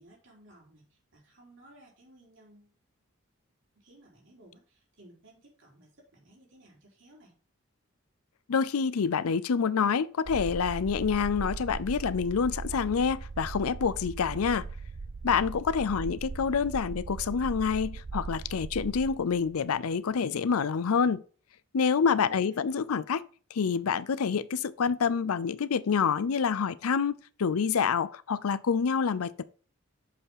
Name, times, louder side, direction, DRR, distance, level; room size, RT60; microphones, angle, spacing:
voice 1, 0.0-2.8 3.8-7.3 22.1-22.6, right 1 dB, 60° right, 4.2 m, -57 dB
voice 2, 8.5-14.7 15.2-21.2 21.7-23.2 23.5-29.4, left 6 dB, 90° left, 0.5 m, -27 dB
sound 1, 10.3-19.8, right 4 dB, 45° right, 0.4 m, -39 dB
6.5 x 5.5 x 5.6 m
head